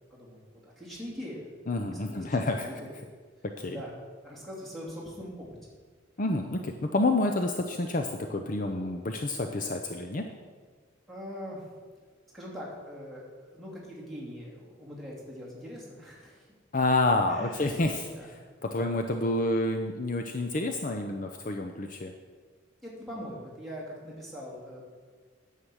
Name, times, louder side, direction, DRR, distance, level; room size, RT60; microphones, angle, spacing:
voice 1, 0.0-1.5 1.8-2.9 3.6-3.9 4.2-5.5 11.1-11.7 12.0-16.5 17.3-17.7 18.1-18.3 18.7-19.3 22.8-24.8, equal, ahead, -5 dB, 2.7 m, -42 dB
voice 2, 1.7-2.7 3.4-3.8 6.2-10.3 16.7-18.1 18.6-22.1, left 2 dB, 45° left, 5 dB, 0.6 m, -28 dB
9.8 x 7.4 x 6.3 m, 1.5 s
head